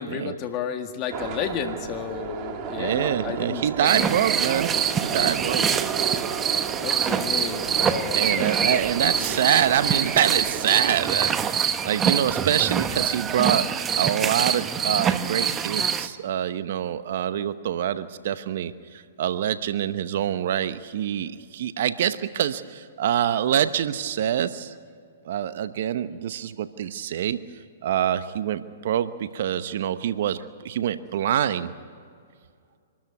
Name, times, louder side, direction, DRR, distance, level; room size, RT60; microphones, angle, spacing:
voice 1, 0.0-4.1 6.8-8.8 9.2-9.4 11.8-11.9, left 8 dB, 35° left, 6 dB, 1.9 m, -32 dB
sound 1, 1.1-11.0, right 7 dB, 35° right, 2.4 m, -33 dB
voice 2, 2.8-4.7 5.1-5.7 8.1-24.7 25.2-27.4 27.8-31.7, right 10 dB, 60° right, 13 dB, 0.9 m, -25 dB
sound 2, 3.8-16.1, right 7 dB, 20° right, 1.0 m, -25 dB
25.5 x 13.0 x 9.6 m, 2.2 s
hypercardioid pair, 125°, 0 cm